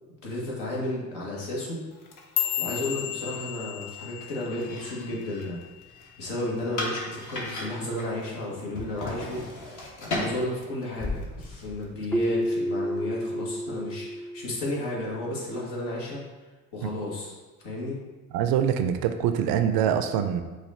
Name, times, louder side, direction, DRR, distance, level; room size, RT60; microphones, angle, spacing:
voice 1, 0.2-1.8 2.6-5.6 6.2-9.6 10.0-16.2 16.7-17.3 17.6-18.0, left 1 dB, 70° left, -4 dB, 1.4 m, -33 dB
sound 1, 1.9-6.3 6.6-7.0 7.4-7.8 8.2-8.4 9.0-9.4 9.8-10.6 11.0-11.4 12.2-12.3, left 11 dB, 85° left, 0.7 m, -34 dB
sound 2, 4.5-11.9, left 2 dB, 45° left, 1.2 m, -37 dB
Keyboard (musical), 12.1-14.9, equal, 5° left, 0.3 m, -30 dB
voice 2, 18.3-20.4, right 9 dB, 60° right, 9 dB, 0.5 m, -24 dB
4.8 x 2.5 x 4.1 m, 1.2 s
hypercardioid pair, 55°, 41 cm